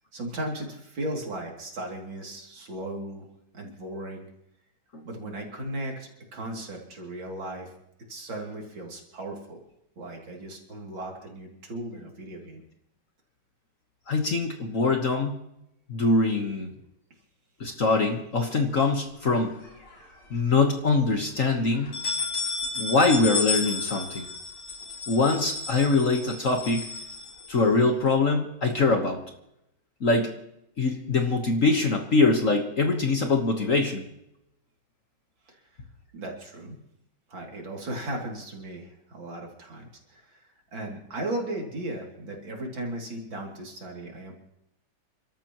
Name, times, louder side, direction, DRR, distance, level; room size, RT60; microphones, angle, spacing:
voice 1, 0.1-3.3 3.5-4.3 5.0-7.7 8.1-9.6 10.0-12.6 35.5-35.8 36.1-36.8 37.3-44.3, right 1 dB, 65° right, 0 dB, 3.5 m, -36 dB
voice 2, 14.1-15.4 15.9-16.7 17.6-19.5 20.3-22.0 22.8-24.3 25.1-26.9 27.5-29.2 30.0-30.3 30.8-34.1, left 3 dB, 45° left, 4 dB, 1.4 m, -23 dB
sound 1, 19.3-20.2 20.6-20.7 21.1-21.2 21.7-27.9, left 4 dB, 90° left, 4.4 m, -33 dB
29.5 x 13.0 x 3.0 m, 0.82 s
omnidirectional pair, 2.3 m